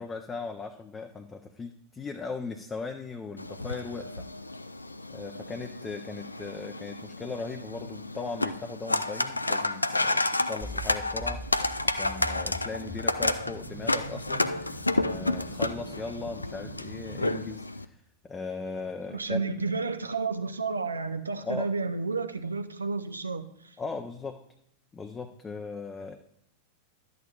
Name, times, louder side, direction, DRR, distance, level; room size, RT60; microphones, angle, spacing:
voice 1, 0.0-4.2 5.1-11.4 11.8-19.4 21.4-21.7 23.8-24.4 24.9-26.2, left 4 dB, 20° left, 5 dB, 0.6 m, -38 dB
sound 1, 3.4-17.8, left 2 dB, 85° left, 0.3 m, -31 dB
sound 2, 10.6-17.5, right 1 dB, 25° right, 1.1 m, -43 dB
voice 2, 19.1-23.5, right 4 dB, 80° right, 9 dB, 0.6 m, -31 dB
12.0 x 8.5 x 2.4 m, 0.75 s
figure-of-eight pair, 90°, 0 cm